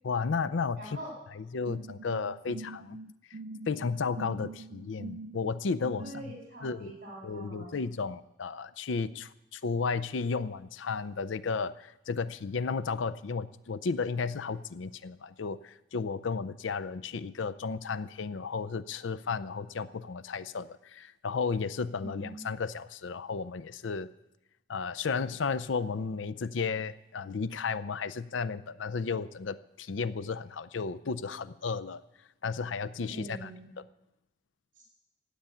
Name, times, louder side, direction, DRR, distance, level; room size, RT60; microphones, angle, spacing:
voice 1, 0.0-1.0 1.4-3.0 3.7-6.2 6.6-6.9 7.2-24.1 24.7-32.0 32.4-33.5 33.8-33.9, left 5 dB, 80° left, 14 dB, 0.5 m, -33 dB
voice 2, 0.8-1.1 6.0-7.8 22.0-22.5 33.1-33.7 34.8-34.9, right 1 dB, 45° right, -2 dB, 7.6 m, -44 dB
sound 1, 1.6-6.4, right 2 dB, 75° right, 0.5 m, -44 dB
15.5 x 8.4 x 9.0 m, 0.89 s
head